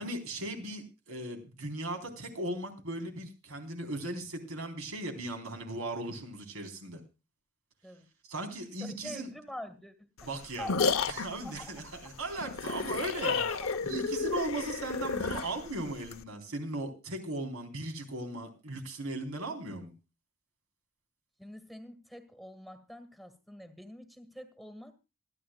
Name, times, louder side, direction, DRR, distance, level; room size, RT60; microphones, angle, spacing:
voice 1, 0.0-7.0 8.3-9.3 10.2-10.7 11.1-13.4 13.8-19.9, right 2 dB, 80° right, 4 dB, 3.9 m, -37 dB
voice 2, 8.8-10.1 10.6-11.0 11.4-11.7 13.2-13.7 21.4-25.0, left 1 dB, ahead, 9 dB, 1.6 m, -45 dB
sound 1, 10.2-16.2, left 5 dB, 70° left, 0.9 m, -32 dB
27.0 x 10.0 x 2.3 m, 0.29 s
head